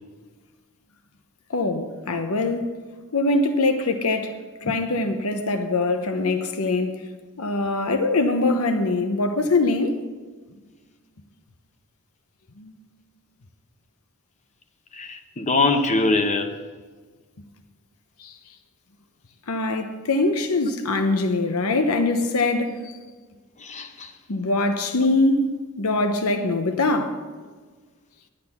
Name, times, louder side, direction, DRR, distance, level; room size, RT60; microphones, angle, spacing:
voice 1, 1.5-2.7 3.1-7.1 7.4-10.0 12.6-12.7 18.2-18.4 19.5-22.8 24.3-27.2, left 2 dB, 80° left, 0.9 m, -23 dB
voice 2, 15.0-16.5 23.6-24.1, left 3 dB, 35° left, 0.9 m, -23 dB
10.5 x 10.0 x 5.7 m
head